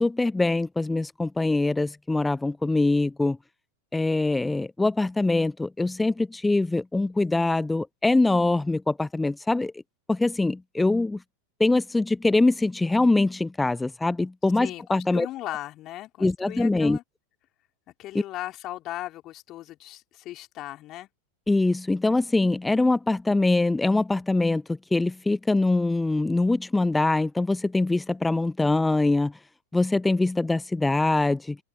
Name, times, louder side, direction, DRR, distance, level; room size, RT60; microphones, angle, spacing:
voice 1, 0.0-3.4 3.9-9.7 10.1-11.2 11.6-15.3 16.2-17.0 21.5-29.3 29.7-31.6, left 2 dB, 5° left, 0.8 m, -23 dB
voice 2, 14.6-17.0 18.0-21.1, left 15 dB, 35° left, 3.6 m, -37 dB
figure-of-eight pair, 90°, 0 cm